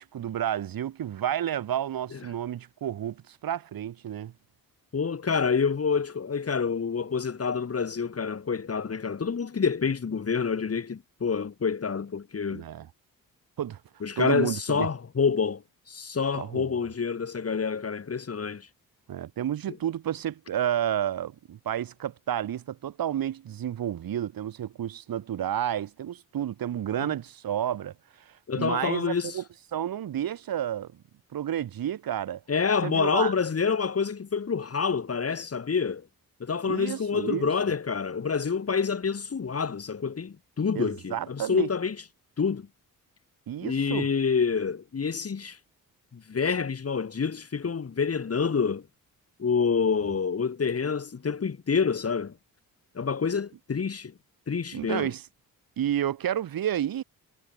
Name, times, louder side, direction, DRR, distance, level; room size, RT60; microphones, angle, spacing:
voice 1, 0.0-4.3 12.5-12.9 13.6-13.8 14.2-14.9 16.3-16.7 19.1-27.9 28.3-29.4 29.7-31.0 31.3-32.4 32.8-33.3 36.7-37.5 40.7-41.7 43.5-44.1 54.7-55.2 55.8-57.0, right 10 dB, 75° right, 2.9 m, -31 dB
voice 2, 4.9-12.6 14.0-15.6 15.9-18.7 19.7-19.8 27.0-27.1 28.5-29.4 32.5-36.1 36.4-42.0 42.4-42.7 43.6-45.6 46.1-48.8 49.4-52.3 52.9-54.1 54.5-55.1, left 5 dB, 40° left, 4.5 m, -27 dB
cardioid pair, 95°, 36 cm